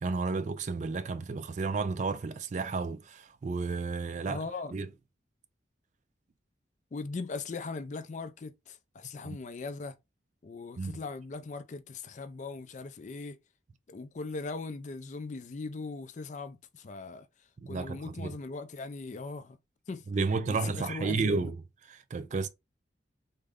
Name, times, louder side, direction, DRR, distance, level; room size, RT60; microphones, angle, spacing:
voice 1, 0.0-4.4 4.7-4.9 9.2-9.4 10.8-11.0 17.6-18.4 20.1-21.6 21.9-22.5, right 4 dB, 40° right, 0.3 m, -32 dB
voice 2, 4.3-4.8 6.9-10.0 10.4-13.4 13.9-17.3 17.7-19.6 19.9-20.0 20.5-21.5, left 3 dB, 40° left, 0.4 m, -39 dB
3.6 x 2.1 x 3.5 m
head